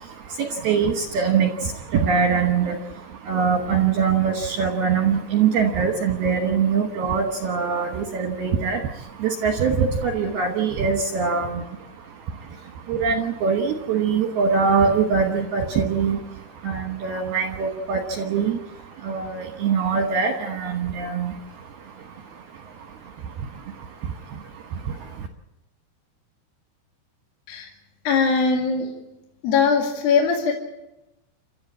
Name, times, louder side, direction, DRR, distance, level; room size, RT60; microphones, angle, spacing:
voice 1, 0.0-25.3, right 6 dB, 70° right, 4 dB, 2.5 m, -24 dB
voice 2, 28.1-28.9 29.4-30.5, left 5 dB, 55° left, 1 dB, 3.5 m, -20 dB
29.5 x 13.0 x 8.5 m, 0.98 s
omnidirectional pair, 5.9 m